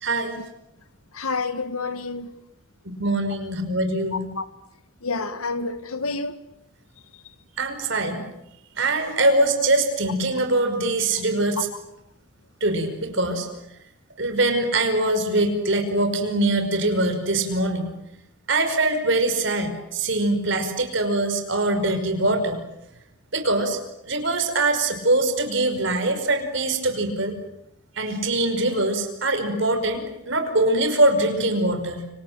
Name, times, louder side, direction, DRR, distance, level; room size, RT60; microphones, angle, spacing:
voice 1, 0.0-0.3 3.0-4.2 7.6-8.2 8.8-11.7 12.6-13.5 14.2-17.9 18.5-22.6 23.3-23.8 24.1-27.3 28.0-32.1, right 2 dB, 60° right, 5.4 m, -23 dB
voice 2, 1.1-2.3 4.4-4.5 5.0-6.4 11.6-11.7, left 3 dB, 85° left, 2.0 m, -28 dB
29.5 x 26.0 x 7.7 m
head